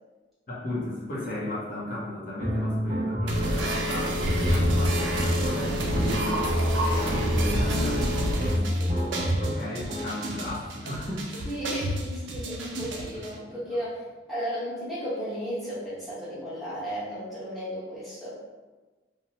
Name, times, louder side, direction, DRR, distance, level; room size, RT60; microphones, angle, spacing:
voice 1, 0.5-11.5 13.0-13.6, left 1 dB, 45° left, -7 dB, 0.6 m, -35 dB
sound 1, 2.4-10.3, equal, 25° right, 0.5 m, -29 dB
sound 2, 3.3-13.3, equal, 75° right, 0.4 m, -28 dB
voice 2, 11.4-18.4, equal, ahead, -11 dB, 0.9 m, -34 dB
2.9 x 2.0 x 2.7 m, 1.2 s
head